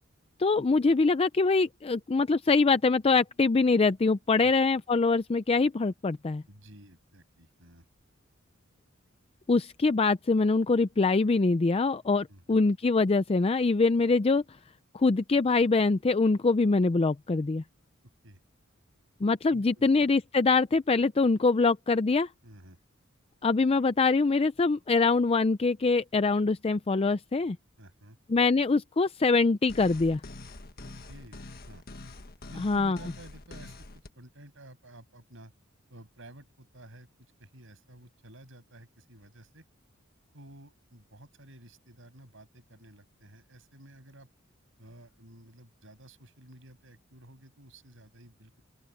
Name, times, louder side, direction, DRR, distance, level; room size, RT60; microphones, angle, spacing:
voice 1, 0.4-6.4 9.5-14.4 14.9-17.6 19.2-22.3 23.4-27.6 28.3-30.2 32.6-33.0, left 3 dB, 30° left, 0.4 m, -24 dB
voice 2, 6.5-7.8 12.3-12.6 18.2-18.4 19.5-20.0 22.4-22.8 27.8-28.2 30.8-31.8 32.5-33.8 34.2-35.5 35.9-37.1 37.4-39.6 40.3-44.3 44.8-48.6, right 1 dB, 70° right, 8.0 m, -52 dB
sound 1, 29.7-34.1, left 2 dB, 50° left, 1.6 m, -45 dB
open air
head